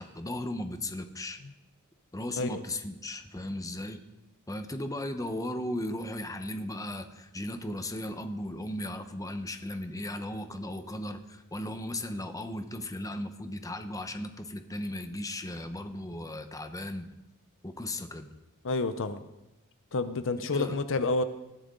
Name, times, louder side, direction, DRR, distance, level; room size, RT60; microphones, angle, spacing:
voice 1, 0.0-1.4 2.1-4.0 4.5-17.1 17.6-18.3 20.4-20.8, left 1 dB, 15° left, 8 dB, 1.0 m, -36 dB
voice 2, 18.6-19.2 19.9-21.2, left 3 dB, 60° left, 11 dB, 0.7 m, -29 dB
19.5 x 14.5 x 3.9 m, 0.97 s
head